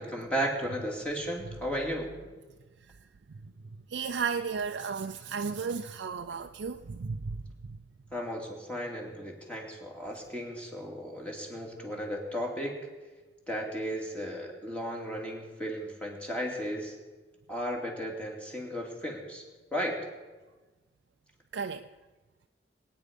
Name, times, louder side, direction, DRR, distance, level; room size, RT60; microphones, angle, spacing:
voice 1, 0.0-2.1 8.1-12.7 13.5-17.0 17.5-19.4 19.7-20.0, equal, 5° left, 2.6 m, -35 dB
voice 2, 3.9-7.4 21.5-21.9, right 5 dB, 90° right, 0.5 m, -33 dB
22.0 x 9.4 x 5.2 m
head